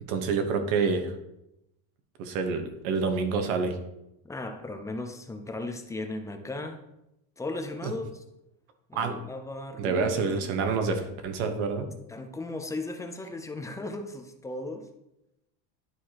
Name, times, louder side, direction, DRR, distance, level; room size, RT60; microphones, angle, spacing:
voice 1, 0.1-1.1 2.2-3.8 7.8-7.9 8.9-9.1 9.8-11.9, right 4 dB, 90° right, 6 dB, 1.3 m, -27 dB
voice 2, 4.2-6.8 7.4-8.2 8.9-10.1 10.4-10.6 12.1-14.9, left 2 dB, 10° left, 6 dB, 0.4 m, -36 dB
11.0 x 4.7 x 2.9 m, 0.87 s
cardioid pair, 145°, 42 cm